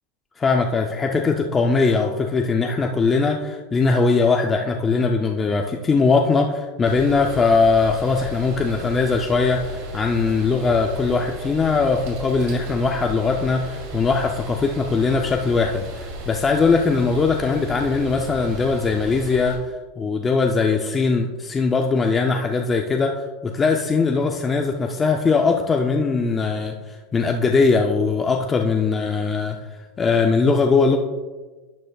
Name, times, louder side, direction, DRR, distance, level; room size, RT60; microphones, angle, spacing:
voice 1, 0.4-29.6 30.0-31.0, left 4 dB, 15° left, 2 dB, 0.4 m, -20 dB
sound 1, 6.8-19.6, left 1 dB, 55° right, 2.5 m, -34 dB
11.5 x 8.7 x 2.3 m, 1.3 s
supercardioid pair, 175°, 0 cm